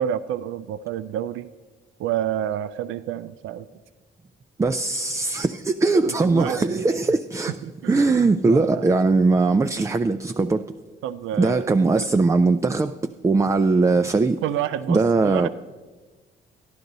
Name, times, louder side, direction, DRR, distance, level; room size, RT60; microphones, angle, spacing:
voice 1, 0.0-1.5 2.0-3.7 6.0-6.8 7.6-8.1 8.5-9.0 11.0-12.1 14.4-15.5, right 10 dB, 85° right, 13 dB, 0.4 m, -29 dB
voice 2, 4.6-7.5 7.9-10.6 11.4-13.0 13.2-14.4 14.9-15.5, right 3 dB, 15° right, 8 dB, 0.3 m, -20 dB
13.5 x 11.0 x 4.0 m, 1.3 s
cardioid pair, 90°, 20 cm